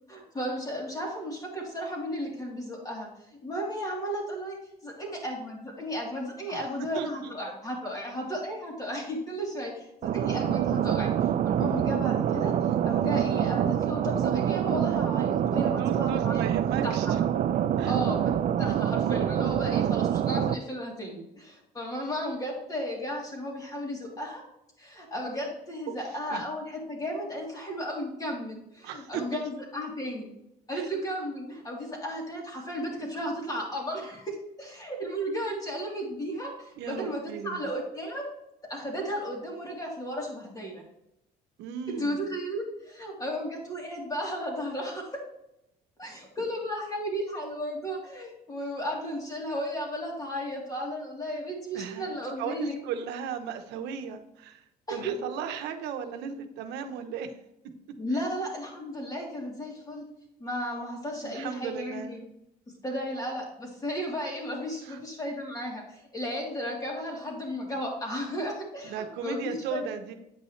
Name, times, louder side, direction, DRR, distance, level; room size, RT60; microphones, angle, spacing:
voice 1, 0.1-4.6 4.8-12.5 12.8-17.2 17.8-18.3 18.6-24.4 24.8-30.3 30.7-38.3 38.6-40.8 41.9-45.2 46.0-52.8 54.9-55.2 58.0-60.1 60.4-62.2 62.8-69.8, equal, 20° left, -2 dB, 2.9 m, -34 dB
voice 2, 6.9-7.3 15.6-17.2 17.8-17.9 25.9-26.0 26.3-26.4 28.8-29.5 30.7-30.9 36.8-37.6 41.6-42.2 51.7-54.6 54.9-57.3 61.1-62.2 64.8-65.0 68.8-70.1, right 7 dB, 90° right, 7 dB, 0.9 m, -36 dB
sound 1, 10.0-20.5, right 10 dB, 55° right, 0.5 m, -26 dB
8.7 x 5.5 x 3.2 m, 0.83 s
cardioid pair, 110°, 17 cm